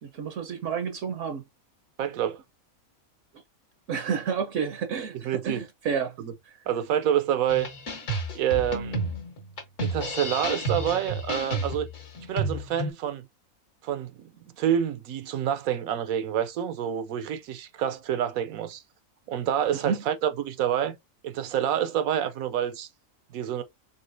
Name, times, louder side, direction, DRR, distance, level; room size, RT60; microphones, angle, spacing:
voice 1, 0.0-1.4 3.9-6.1 19.7-20.0, right 6 dB, 65° right, 0.9 m, -30 dB
voice 2, 2.0-2.4 5.2-5.6 6.2-6.3 6.7-7.7 8.3-9.0 9.8-11.9 12.3-13.2 13.8-18.8 19.3-21.0 21.2-22.9 23.3-23.6, right 10 dB, 85° right, 1.1 m, -27 dB
sound 1, 7.5-12.9, right 1 dB, 60° left, 1.5 m, -31 dB
4.0 x 3.5 x 2.5 m
omnidirectional pair, 1.5 m